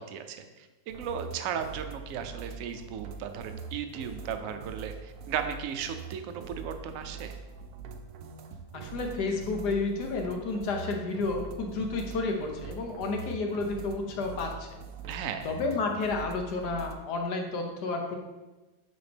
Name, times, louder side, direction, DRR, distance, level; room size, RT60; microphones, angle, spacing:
voice 1, 0.0-7.3 15.1-15.5, right 7 dB, 70° right, 8 dB, 0.8 m, -36 dB
sound 1, 0.9-16.9, right 6 dB, 85° right, 1.3 m, -43 dB
voice 2, 8.7-14.7 15.4-18.2, left 3 dB, 70° left, 2 dB, 1.4 m, -31 dB
6.9 x 4.2 x 3.4 m, 1.1 s
omnidirectional pair, 1.9 m